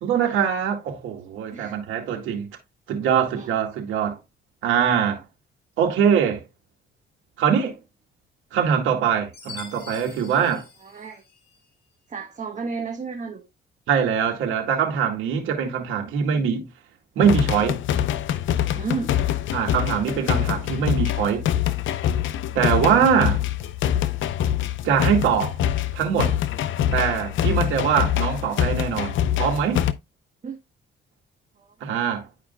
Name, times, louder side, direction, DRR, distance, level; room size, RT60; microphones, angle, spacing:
voice 1, 0.0-2.5 2.9-4.2 4.6-5.2 5.8-6.4 7.4-7.8 8.5-10.6 13.9-16.7 17.2-17.8 19.5-21.5 22.6-23.4 24.8-25.6 25.9-26.4 26.9-29.9 31.8-32.2, right 7 dB, 85° right, 2.1 m, -22 dB
Chime, 9.3-11.7, left 6 dB, 55° left, 4.2 m, -44 dB
voice 2, 10.8-11.2 12.1-13.4 18.7-19.1 30.4-30.6 31.6-31.9, right 5 dB, 35° right, 1.4 m, -33 dB
sound 1, 17.2-29.9, left 11 dB, 75° left, 0.6 m, -24 dB
10.5 x 5.0 x 2.3 m
cardioid pair, 90°, 20 cm